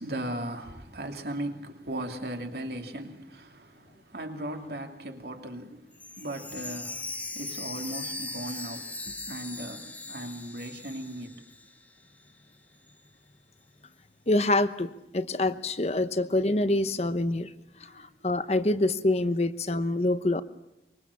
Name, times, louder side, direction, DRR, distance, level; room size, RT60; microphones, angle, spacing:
voice 1, 0.0-11.4 17.8-18.1, right 1 dB, 65° right, 2.7 m, -38 dB
Chime, 5.9-11.9 12.2-12.3 12.9-13.0, left 2 dB, 10° left, 1.4 m, -39 dB
voice 2, 14.3-17.5 17.9-20.4, left 2 dB, 35° left, 1.0 m, -26 dB
24.5 x 23.5 x 7.2 m
head